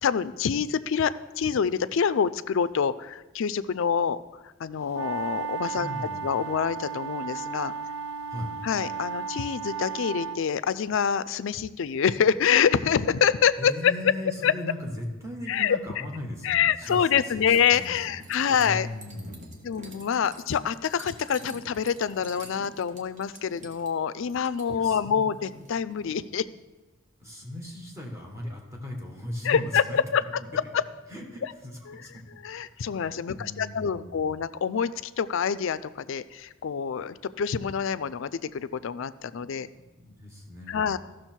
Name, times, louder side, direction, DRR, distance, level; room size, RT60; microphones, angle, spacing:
voice 1, 0.0-4.2 4.6-5.9 6.2-7.7 8.6-13.9 14.4-14.5 15.5-15.8 16.4-18.9 19.6-26.5 29.4-30.2 30.5-30.8 31.4-31.5 31.9-32.0 32.4-39.7 40.7-41.0, left 7 dB, 65° left, 15 dB, 0.4 m, -26 dB
sound 1, 4.9-10.4, right 6 dB, 70° right, 0.4 m, -34 dB
voice 2, 5.8-6.3 8.3-8.5 13.6-18.0 18.5-19.6 24.7-25.3 27.2-30.6 31.1-32.2 32.7-34.3 39.5-41.0, left 1 dB, 15° right, -1 dB, 1.5 m, -38 dB
Wind chimes, 16.8-26.3, right 1 dB, 35° right, 1.2 m, -48 dB
14.5 x 6.3 x 4.5 m, 1.2 s
head